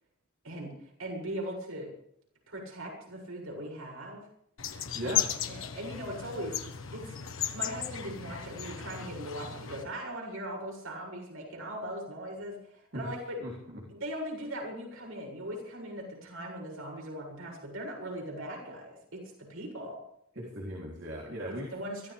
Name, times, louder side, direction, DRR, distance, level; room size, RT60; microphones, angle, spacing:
voice 1, 0.4-1.9 2.5-4.2 5.0-5.1 5.4-6.6 6.9-7.2 7.5-13.4 13.9-20.0 21.5-22.1, right 1 dB, 85° right, -1 dB, 7.5 m, -39 dB
sound 1, 4.6-9.8, left 9 dB, 75° left, 1.4 m, -35 dB
voice 2, 4.9-5.3 12.9-13.1 13.4-13.8 20.4-21.7, equal, 55° right, -4 dB, 3.6 m, -38 dB
23.0 x 16.0 x 3.6 m, 0.70 s
head